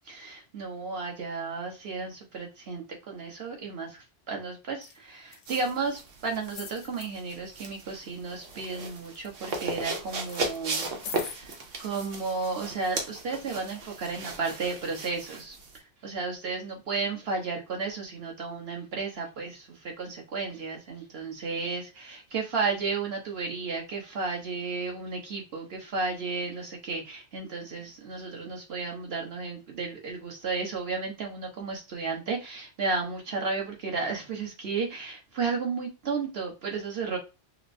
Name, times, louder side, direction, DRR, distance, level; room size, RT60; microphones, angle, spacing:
voice 1, 0.1-10.9 11.1-11.5 11.8-37.2, right 4 dB, 55° right, 1 dB, 1.4 m, -33 dB
sound 1, 4.8-5.0 5.3-6.0 6.5-7.1 7.7-8.2 8.5-9.9 10.2-11.4 12.2-12.3, left 7 dB, 60° left, 0.5 m, -43 dB
sound 2, 5.5-15.8, right 3 dB, 85° right, 1.2 m, -37 dB
5.7 x 2.1 x 2.6 m, 0.27 s
omnidirectional pair, 1.2 m